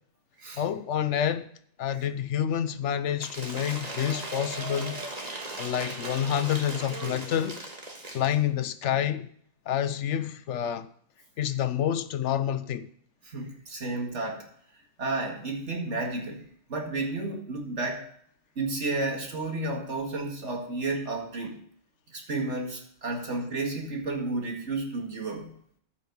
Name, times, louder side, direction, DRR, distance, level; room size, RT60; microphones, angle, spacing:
voice 1, 0.6-1.5 1.8-5.0 5.6-7.6 8.1-9.3 9.7-10.9 11.4-12.9, left 10 dB, 90° left, 1.0 m, -28 dB
Cheering / Applause / Crowd, 3.2-8.4, right 2 dB, 35° right, 1.6 m, -38 dB
voice 2, 13.3-14.5 15.0-16.4 16.7-18.1 18.6-21.6 22.1-25.5, right 2 dB, 85° right, 2.3 m, -32 dB
14.0 x 5.6 x 5.4 m
omnidirectional pair, 1.2 m